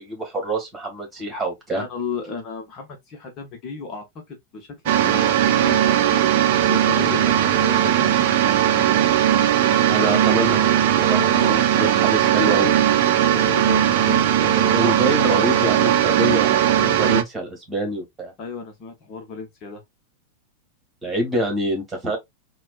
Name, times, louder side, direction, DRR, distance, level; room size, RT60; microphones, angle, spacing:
voice 1, 0.0-1.8 9.9-10.7 11.0-12.7 14.5-18.3 21.0-22.2, right 1 dB, 15° right, 1.7 m, -26 dB
voice 2, 1.7-6.2 6.7-8.6 11.2-11.6 13.3-16.1 18.4-19.8, left 4 dB, 35° left, 0.9 m, -34 dB
sound 1, 4.9-17.2, right 10 dB, 50° right, 0.6 m, -18 dB
4.2 x 2.3 x 2.3 m
figure-of-eight pair, 90°, 0 cm